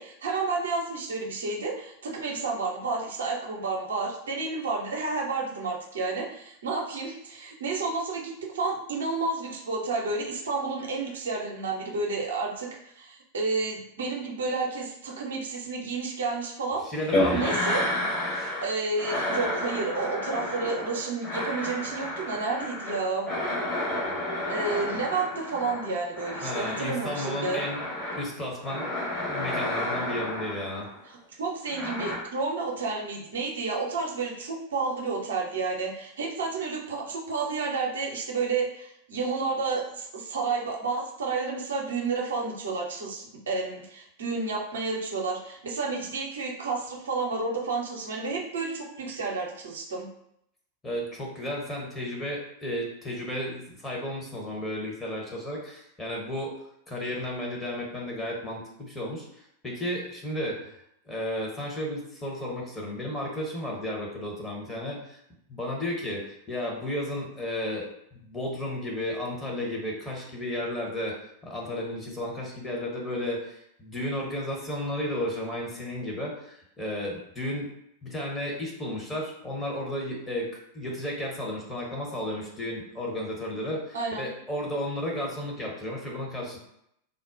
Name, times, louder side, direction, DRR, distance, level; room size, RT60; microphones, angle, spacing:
voice 1, 0.0-12.7 13.0-16.8 17.3-17.8 18.6-23.3 24.5-27.6 31.1-50.1 83.9-84.3, right 3 dB, 65° right, -1 dB, 0.5 m, -31 dB
voice 2, 16.8-17.5 26.4-27.8 28.2-30.9 50.8-56.5 56.9-60.7 61.0-65.2 65.5-71.1 71.4-77.7 78.0-80.5 80.7-86.6, left 1 dB, 10° left, -2 dB, 0.8 m, -33 dB
sound 1, 17.1-18.7 19.0-28.3 28.6-31.0 31.7-32.2, left 1 dB, 30° left, 1.1 m, -31 dB
3.5 x 2.1 x 2.5 m, 0.75 s
figure-of-eight pair, 90°, 0 cm